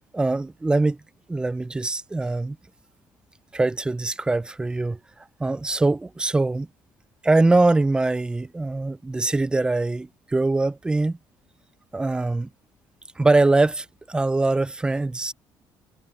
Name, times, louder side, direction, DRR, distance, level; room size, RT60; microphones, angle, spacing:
voice 1, 0.1-1.0 1.3-2.6 3.5-5.0 5.4-6.7 7.2-11.2 11.9-12.5 13.2-15.3, right 2 dB, 10° right, 0.4 m, -22 dB
cardioid pair, 145°, 9 cm